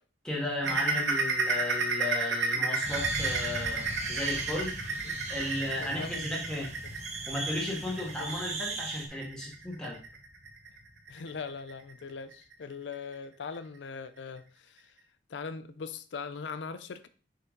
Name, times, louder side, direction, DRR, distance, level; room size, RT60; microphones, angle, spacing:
voice 1, 0.2-5.0 5.3-6.7 7.3-10.0, left 1 dB, 5° left, 1.6 m, -35 dB
sound 1, 0.6-11.9 12.3-12.5 12.9-13.0 13.5-13.6, right 3 dB, 80° right, 1.3 m, -32 dB
sound 2, 2.8-11.7, equal, 35° left, 1.0 m, -44 dB
sound 3, 2.8-9.1, right 4 dB, 40° right, 1.2 m, -39 dB
voice 2, 5.5-6.2 8.2-8.4 11.1-15.0 15.3-17.1, left 5 dB, 75° left, 0.5 m, -41 dB
6.7 x 4.8 x 3.7 m
head